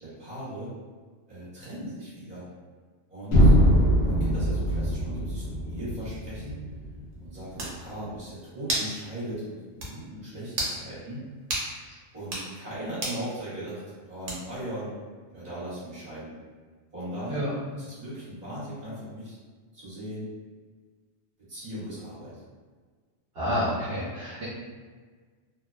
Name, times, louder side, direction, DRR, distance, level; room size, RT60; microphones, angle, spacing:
voice 1, 0.0-0.7 1.3-2.5 3.1-3.5 4.0-6.6 7.2-11.2 12.1-14.9 15.3-16.3 16.9-17.5 17.7-19.4 19.7-20.3 21.4-22.4, right 1 dB, 35° right, -10 dB, 1.3 m, -38 dB
sound 1, 3.3-7.3, equal, 70° left, 0.9 m, -22 dB
sound 2, 7.1-7.2 7.6-7.8 8.7-8.9 9.3-9.4 9.8-9.9 10.5-10.8 11.5-11.7 12.2-12.5 13.0-13.2 14.3-14.6, right 1 dB, 85° right, 1.1 m, -30 dB
voice 2, 23.3-24.4, equal, 60° right, -12 dB, 1.1 m, -29 dB
2.8 x 2.1 x 2.3 m, 1.5 s
omnidirectional pair, 1.3 m